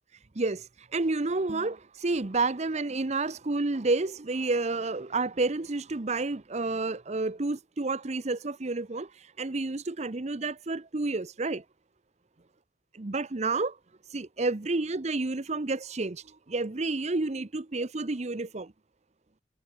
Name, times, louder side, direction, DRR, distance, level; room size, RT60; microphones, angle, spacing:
voice 1, 0.3-9.1 9.4-11.6 12.9-13.8 14.1-18.7, right 3 dB, 40° right, 0.8 m, -30 dB
head